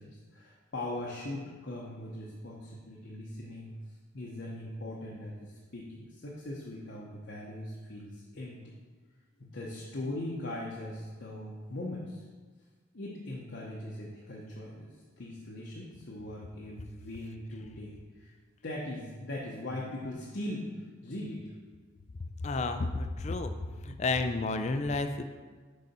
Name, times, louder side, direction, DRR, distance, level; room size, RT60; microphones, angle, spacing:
voice 1, 0.0-8.6 9.4-12.2 12.9-18.3 18.6-21.5, left 1 dB, 60° left, -4 dB, 0.8 m, -40 dB
voice 2, 22.4-23.6 23.8-25.2, left 3 dB, 35° left, 8 dB, 0.3 m, -31 dB
6.6 x 4.8 x 4.2 m, 1.5 s
head